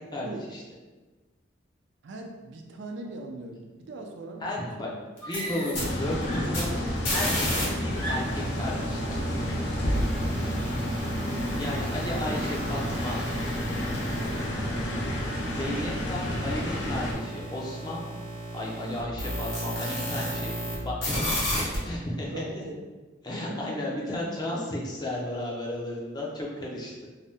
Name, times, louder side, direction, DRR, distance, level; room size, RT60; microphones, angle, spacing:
voice 1, 0.1-0.6 4.4-4.9 5.2-6.8 7.1-9.1 11.6-13.2 15.5-18.1 18.5-20.5 20.8-22.6 23.2-26.9, left 1 dB, 20° left, -4 dB, 0.5 m, -33 dB
voice 2, 2.0-5.0 10.2-10.3 14.0-15.0 18.9-19.1 22.3-22.8 23.3-23.6, right 2 dB, 70° right, 2 dB, 0.4 m, -41 dB
Screaming, 4.4-4.5 5.2-6.0 6.2-8.5 9.5-9.8, right 1 dB, 90° left, 0.9 m, -38 dB
sound 1, 5.2-7.6 7.9-20.8 21.0-21.8, equal, 50° left, 1.0 m, -34 dB
sound 2, 5.8-17.1, equal, 65° left, 0.6 m, -30 dB
2.7 x 2.1 x 3.4 m, 1.2 s
head